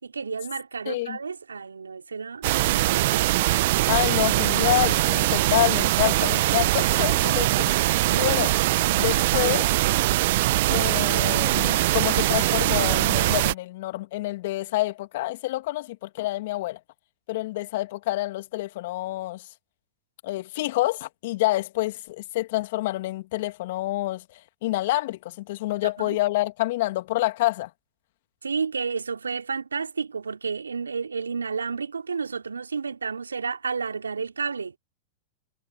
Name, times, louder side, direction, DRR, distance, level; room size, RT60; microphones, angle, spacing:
voice 1, 0.0-3.3 8.1-8.3 26.0-26.2 28.4-34.7, right 5 dB, 85° right, 3.3 m, -31 dB
voice 2, 0.9-1.2 3.9-7.7 8.1-8.5 9.0-9.7 10.7-16.8 17.3-19.4 20.2-27.7, left 18 dB, 60° left, 2.1 m, -27 dB
sound 1, 2.4-13.5, right 18 dB, 60° right, 0.9 m, -22 dB
figure-of-eight pair, 95°, 0 cm